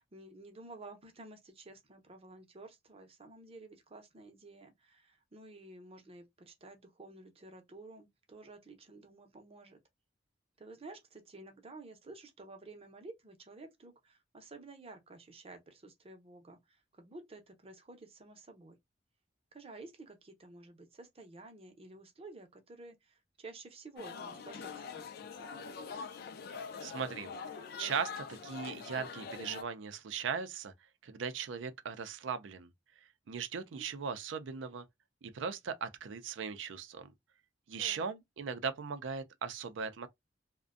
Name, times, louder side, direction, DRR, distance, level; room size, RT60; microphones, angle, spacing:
voice 1, 0.0-9.8 10.6-18.8 19.5-25.1 33.7-33.8 37.8-38.0, right 2 dB, 30° right, 0.6 m, -52 dB
sound 1, 24.0-29.6, left 5 dB, 55° left, 0.3 m, -44 dB
voice 2, 26.8-27.3 27.8-30.7 31.0-32.7 33.3-34.8 35.2-37.1 37.7-40.1, right 6 dB, 80° right, 0.4 m, -38 dB
2.5 x 2.1 x 2.4 m
head